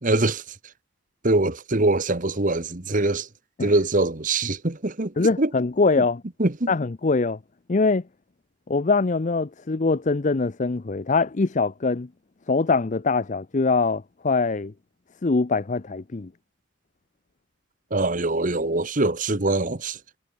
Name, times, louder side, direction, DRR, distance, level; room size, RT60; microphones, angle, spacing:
voice 1, 0.0-0.4 1.2-3.3 3.6-5.5 6.4-6.7 17.9-20.0, right 2 dB, 40° right, 1.3 m, -23 dB
voice 2, 5.2-6.2 6.7-7.4 7.7-8.0 8.7-12.1 12.5-14.7 15.2-16.3, left 3 dB, 35° left, 0.5 m, -23 dB
head